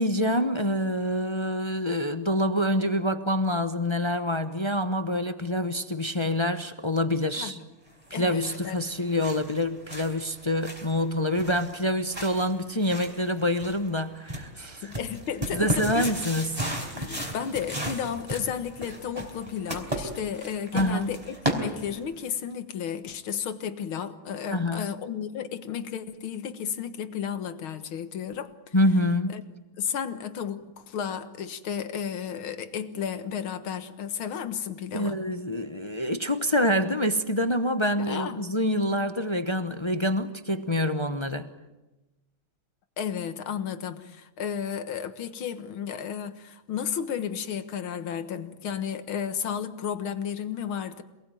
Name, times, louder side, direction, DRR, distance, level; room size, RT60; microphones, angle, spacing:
voice 1, 0.0-7.6 8.1-14.9 15.5-16.6 20.7-21.1 24.5-24.9 28.7-29.4 34.9-41.5, left 1 dB, 25° left, 9 dB, 0.6 m, -26 dB
sound 1, 8.0-22.2, equal, 15° right, 4.4 m, -36 dB
voice 2, 8.1-8.8 14.8-16.1 16.9-28.7 29.3-29.4 29.8-35.2 38.0-38.4 43.0-51.0, left 8 dB, 80° left, 10 dB, 2.2 m, -33 dB
27.5 x 19.0 x 9.2 m, 1.1 s
omnidirectional pair, 2.3 m